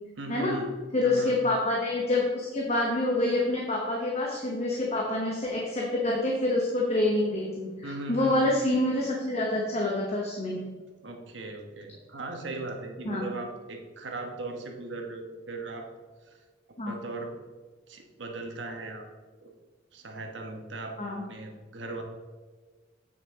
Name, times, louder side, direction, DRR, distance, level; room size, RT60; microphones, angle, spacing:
voice 1, 0.2-0.7 1.0-1.4 7.8-8.4 11.0-15.9 16.2-16.4 16.7-17.4 17.9-19.1 19.4-19.5 19.9-22.0, right 2 dB, 85° right, 3 dB, 1.2 m, -38 dB
voice 2, 0.9-10.6 13.0-13.2 16.8-16.9 21.0-21.2, left 2 dB, 35° left, -2 dB, 1.0 m, -27 dB
8.5 x 6.2 x 3.7 m, 1.4 s
head